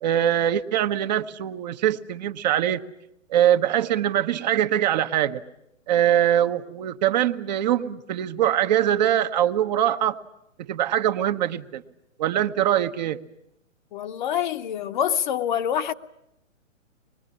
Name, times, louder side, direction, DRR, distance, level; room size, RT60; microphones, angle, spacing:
voice 1, 0.0-2.8 3.3-5.4 5.9-10.1 10.7-11.8 12.2-13.2, right 11 dB, 35° right, 1.0 m, -22 dB
voice 2, 13.9-15.9, left 9 dB, 40° left, 1.0 m, -26 dB
24.5 x 21.5 x 9.8 m
hypercardioid pair, 135°, 38 cm